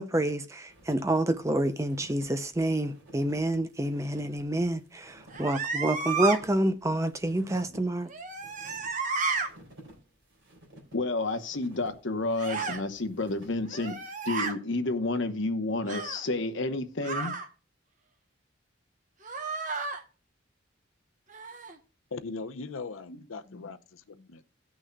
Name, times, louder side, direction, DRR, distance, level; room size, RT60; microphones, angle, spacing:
voice 1, 0.0-8.1, right 1 dB, 15° right, 0.5 m, -28 dB
sound 1, 0.7-13.9, equal, 70° right, 3.6 m, -54 dB
sound 2, 5.3-6.4 8.1-9.5 12.4-12.8 13.7-14.5 15.9-16.2 17.0-17.5 19.2-20.0 21.3-21.8, right 4 dB, 40° right, 1.0 m, -32 dB
voice 2, 10.9-14.0 14.2-17.3 23.1-23.2 23.5-23.6, left 2 dB, 70° left, 1.0 m, -30 dB
voice 3, 22.1-24.5, left 4 dB, 90° left, 0.6 m, -40 dB
17.5 x 6.2 x 2.3 m
head